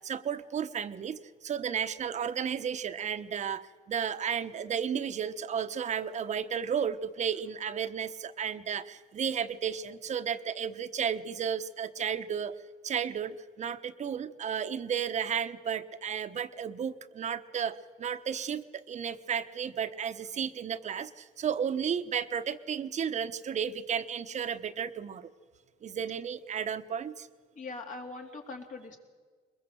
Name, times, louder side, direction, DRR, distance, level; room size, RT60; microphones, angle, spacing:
voice 1, 0.0-1.2 1.4-3.6 3.9-12.5 12.8-21.1 21.4-25.2 25.8-27.1, right 8 dB, 45° right, 10 dB, 1.1 m, -33 dB
voice 2, 27.5-29.0, left 3 dB, 50° left, 3 dB, 3.4 m, -41 dB
22.5 x 21.0 x 7.8 m, 1.5 s
cardioid pair, 110°, 17 cm